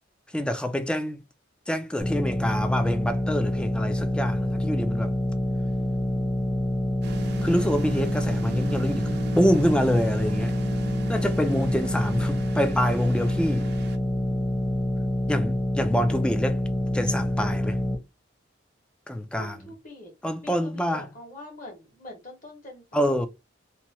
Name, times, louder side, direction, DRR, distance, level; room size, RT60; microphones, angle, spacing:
voice 1, 0.3-1.2 1.7-5.1 7.4-10.5 11.1-13.7 15.3-16.6 16.9-17.8 19.1-19.6 20.2-21.1 22.9-23.3, equal, 5° left, 0.3 m, -26 dB
sound 1, 2.0-18.0, left 1 dB, 25° left, 0.9 m, -27 dB
sound 2, 7.0-14.0, right 3 dB, 60° right, 0.4 m, -37 dB
voice 2, 19.3-20.1 20.4-23.3, left 1 dB, 45° left, 1.4 m, -44 dB
2.9 x 2.2 x 2.8 m
head